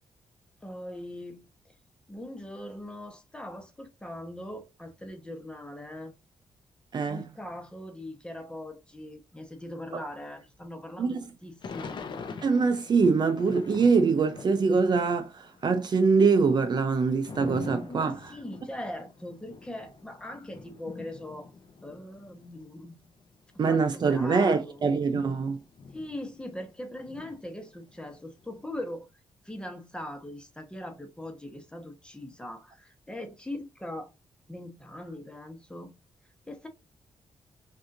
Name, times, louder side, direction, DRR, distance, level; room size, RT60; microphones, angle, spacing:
voice 1, 0.6-1.7 2.1-6.1 7.1-12.0 17.9-21.5 21.8-23.0 23.5-24.9 25.9-29.1 29.4-34.1 34.5-36.0 36.5-36.7, left 1 dB, 10° left, 1.1 m, -41 dB
voice 2, 6.9-7.2 9.9-10.0 11.0-11.2 12.4-18.3 23.6-25.6, right 4 dB, 45° right, 0.6 m, -24 dB
Thunder / Rain, 11.6-15.2 15.5-22.6 23.2-23.3 23.5-26.7 27.0-28.8, left 4 dB, 55° left, 0.8 m, -44 dB
6.2 x 2.7 x 2.6 m
cardioid pair, 110°, 10 cm